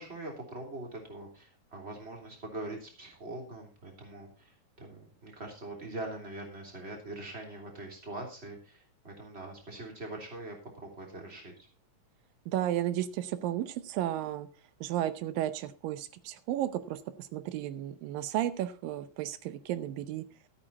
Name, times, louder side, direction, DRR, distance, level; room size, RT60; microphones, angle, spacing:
voice 1, 0.0-11.7, right 2 dB, 20° right, 1 dB, 3.2 m, -43 dB
voice 2, 12.5-14.5 14.8-20.3, right 12 dB, 90° right, 12 dB, 2.5 m, -33 dB
14.0 x 8.9 x 4.1 m, 0.37 s
omnidirectional pair, 3.9 m